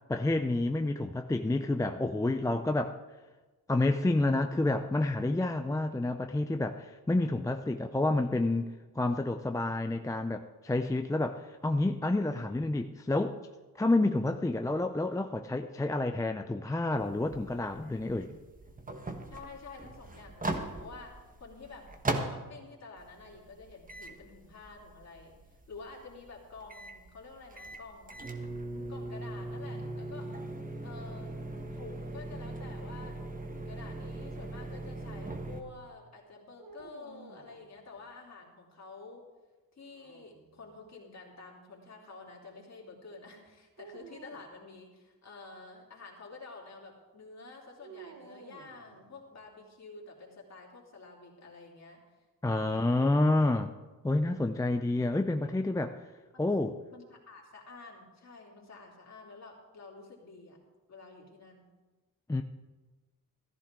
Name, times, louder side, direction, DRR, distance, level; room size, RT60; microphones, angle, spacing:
voice 1, 0.1-3.0 3.7-13.4 13.8-18.3 52.4-53.7 54.0-56.0 56.4-56.7 62.3-62.4, left 2 dB, 10° left, 6 dB, 0.5 m, -29 dB
sound 1, 17.0-22.6 23.0-35.6, right 2 dB, 25° right, 1.2 m, -39 dB
voice 2, 19.3-28.4 28.7-30.3 30.8-31.3 31.7-33.2 33.5-39.3 39.7-52.0 52.5-53.1 56.3-56.5 56.9-60.6 60.9-61.7, left 3 dB, 45° left, -2 dB, 3.2 m, -49 dB
sound 2, 36.6-38.2 39.8-40.9 43.8-44.6 47.8-49.5, right 6 dB, 65° right, 1.2 m, -53 dB
14.5 x 13.0 x 3.7 m, 1.2 s
cardioid pair, 110°, 36 cm